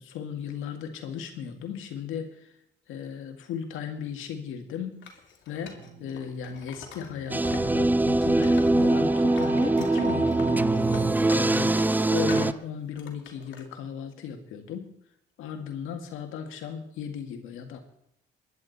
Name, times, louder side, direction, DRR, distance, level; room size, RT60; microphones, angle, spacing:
voice 1, 0.0-2.5 2.9-5.0 5.5-11.8 12.1-14.9 15.4-17.8, left 7 dB, 90° left, 5 dB, 2.0 m, -36 dB
Wood, 5.0-7.7 8.0-9.0 9.3-12.6 13.0-13.6, left 6 dB, 70° left, 2.7 m, -44 dB
sound 1, 5.6-6.2 7.1-11.1, right 3 dB, 35° right, 3.9 m, -34 dB
sound 2, 7.3-12.5, right 2 dB, 10° right, 0.4 m, -23 dB
21.5 x 10.5 x 4.2 m, 0.78 s
cardioid pair, 90°, 20 cm